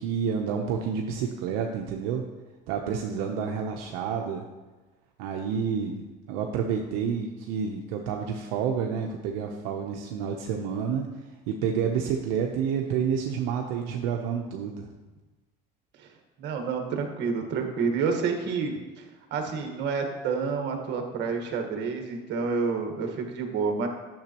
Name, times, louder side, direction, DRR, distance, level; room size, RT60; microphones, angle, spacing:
voice 1, 0.0-2.2 2.7-4.4 5.2-11.1 11.5-14.9, right 7 dB, 85° right, 2 dB, 0.8 m, -29 dB
voice 2, 16.4-19.0 19.3-23.9, right 5 dB, 60° right, 4 dB, 1.5 m, -29 dB
10.5 x 7.0 x 3.0 m, 1.2 s
supercardioid pair, 105°, 20 cm